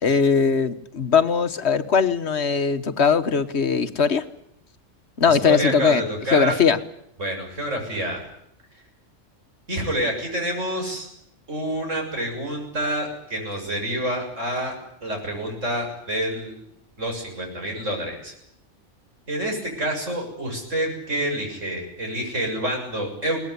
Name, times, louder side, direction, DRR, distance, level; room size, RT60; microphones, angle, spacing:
voice 1, 0.0-4.2 5.2-6.0 6.3-6.8, left 6 dB, 60° left, 11 dB, 1.4 m, -20 dB
voice 2, 5.2-6.6 7.2-8.2 9.7-11.1 11.5-14.8 15.0-16.6 17.0-18.3 19.3-23.4, right 1 dB, 80° right, 2 dB, 7.3 m, -28 dB
22.0 x 19.0 x 9.9 m, 0.76 s
omnidirectional pair, 1.3 m